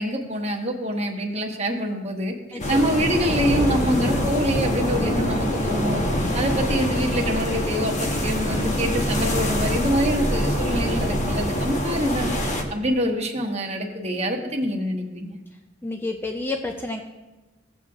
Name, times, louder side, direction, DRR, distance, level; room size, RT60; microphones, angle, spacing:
voice 1, 0.0-2.3 2.7-6.0 6.3-12.3 12.7-15.4, equal, 35° right, 1 dB, 1.1 m, -25 dB
voice 2, 2.5-2.9 15.8-17.0, left 2 dB, 10° left, 4 dB, 0.4 m, -30 dB
sound 1, 2.6-12.6, equal, 40° left, 1.0 m, -24 dB
15.5 x 7.6 x 2.4 m, 1.1 s
head